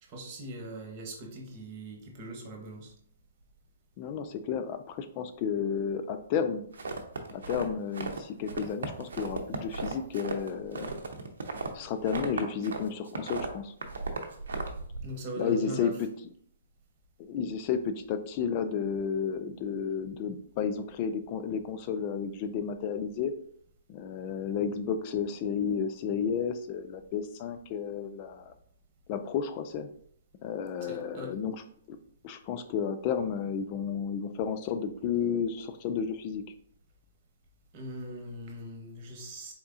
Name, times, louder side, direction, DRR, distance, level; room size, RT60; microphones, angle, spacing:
voice 1, 0.0-2.9 15.0-16.0 30.8-31.4 37.7-39.5, right 1 dB, 40° right, 1 dB, 1.1 m, -40 dB
voice 2, 4.0-6.6 7.3-10.9 11.7-13.7 15.4-16.1 17.2-23.3 23.9-28.5 29.1-29.9 30.4-31.6 31.9-32.0 32.2-36.4, left 7 dB, 40° left, 9 dB, 0.3 m, -32 dB
sound 1, 6.7-8.2 8.5-12.8 13.1-15.0, right 3 dB, 70° right, 0.7 m, -36 dB
4.2 x 3.3 x 2.6 m, 0.62 s
hypercardioid pair, 130°, 0 cm